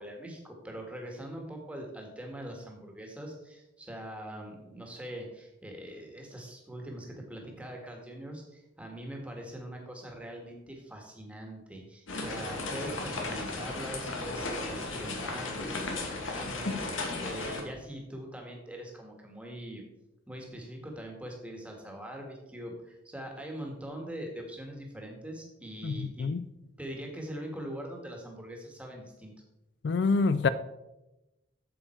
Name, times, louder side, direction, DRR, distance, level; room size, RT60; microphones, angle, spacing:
voice 1, 0.0-19.8 20.3-26.3 26.6-29.3, right 1 dB, 5° right, 1 dB, 1.7 m, -42 dB
sound 1, 12.1-17.6, left 2 dB, 90° left, 2.0 m, -35 dB
voice 2, 25.8-26.4 29.8-30.5, left 4 dB, 60° left, 14 dB, 0.3 m, -26 dB
8.7 x 7.8 x 4.5 m, 0.97 s
head